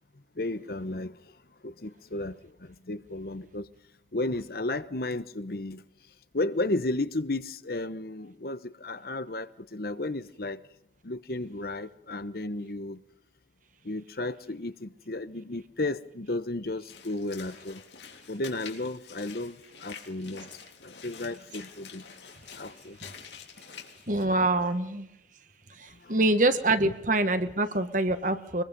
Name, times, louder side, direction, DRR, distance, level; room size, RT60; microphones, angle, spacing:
voice 1, 0.4-1.2 1.6-3.7 4.1-5.8 6.3-10.6 11.0-13.0 13.8-17.8 18.3-20.5 20.8-22.0 22.6-23.0 25.9-26.2, left 2 dB, 60° left, 1.1 m, -33 dB
Walk footsteps / Splash splatter, 16.9-24.3, left 6 dB, 80° left, 3.5 m, -47 dB
voice 2, 24.1-25.1 25.8-28.6, right 2 dB, 45° right, 1.8 m, -25 dB
23.5 x 21.5 x 5.4 m
head